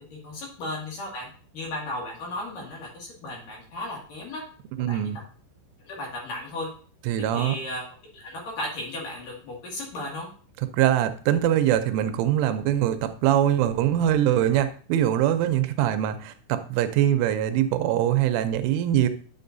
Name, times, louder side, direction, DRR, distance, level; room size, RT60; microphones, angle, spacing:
voice 1, 0.1-1.3 1.5-4.4 4.8-5.0 5.8-6.7 7.3-7.8 8.1-10.3, left 1 dB, 55° left, -2 dB, 3.2 m, -35 dB
voice 2, 4.8-5.2 7.1-7.6 10.7-19.1, right 11 dB, 85° right, 10 dB, 3.2 m, -23 dB
9.7 x 7.6 x 2.6 m, 0.42 s
omnidirectional pair, 5.5 m